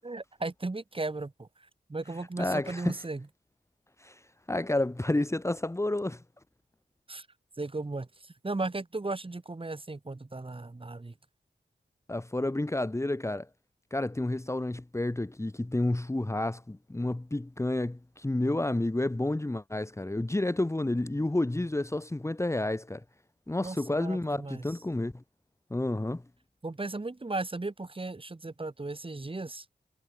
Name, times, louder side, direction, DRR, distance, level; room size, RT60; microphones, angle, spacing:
voice 1, 0.0-1.5 1.9-3.3 7.1-7.3 7.6-11.1 23.6-24.6 26.6-29.7, right 2 dB, 30° right, 7.0 m, -36 dB
voice 2, 2.4-2.9 4.0-4.2 4.5-6.2 12.1-13.5 13.9-23.0 23.5-25.2 25.7-26.2, left 2 dB, 15° left, 1.8 m, -30 dB
wide cardioid pair, 100°, 18 cm